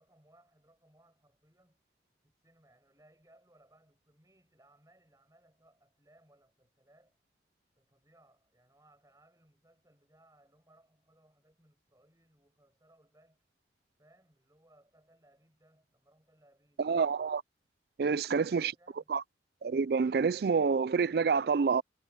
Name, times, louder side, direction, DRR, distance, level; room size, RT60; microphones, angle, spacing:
voice 1, 0.0-1.8 2.2-7.2 7.8-13.4 14.0-16.8 18.0-19.1, right 1 dB, 20° right, 6.4 m, -66 dB
voice 2, 16.8-17.4 18.0-18.7 19.1-19.2 19.6-21.8, right 5 dB, 55° right, 0.4 m, -27 dB
head